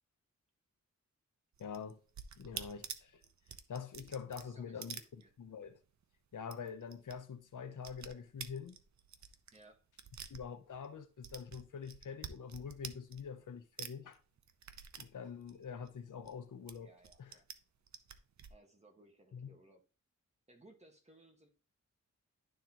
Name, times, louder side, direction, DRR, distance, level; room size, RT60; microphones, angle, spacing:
sound 1, 1.5-5.8 6.0-6.1 6.4-7.2 7.4-10.9 11.2-13.5 13.8-16.3 16.7-17.5 17.9-18.5, right 7 dB, 65° right, 0.6 m, -48 dB
voice 1, 1.6-2.0 2.4-3.2 3.7-5.0 5.4-5.8 6.3-8.8 10.3-14.2 15.0-16.9 17.2-17.4 19.3-19.5, left 6 dB, 90° left, 0.8 m, -45 dB
voice 2, 4.4-5.3 9.5-9.8 16.8-17.5 18.5-19.8 20.5-21.5, right 1 dB, 20° right, 1.4 m, -62 dB
11.5 x 3.8 x 2.9 m
wide cardioid pair, 135°, 30 cm